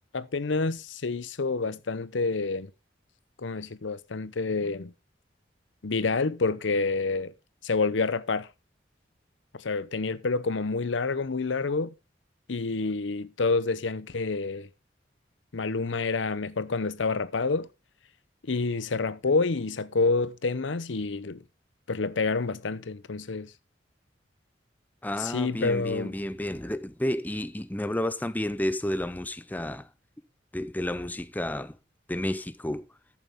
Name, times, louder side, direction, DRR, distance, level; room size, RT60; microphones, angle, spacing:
voice 1, 0.1-2.7 3.4-4.9 5.8-7.3 7.6-8.5 9.6-11.9 12.5-14.7 15.5-17.7 18.5-21.4 21.9-23.5 25.2-26.1, left 3 dB, 85° left, 0.7 m, -28 dB
voice 2, 25.0-29.9 30.5-31.8 32.1-32.8, left 1 dB, 10° left, 0.6 m, -31 dB
14.0 x 7.2 x 3.6 m
head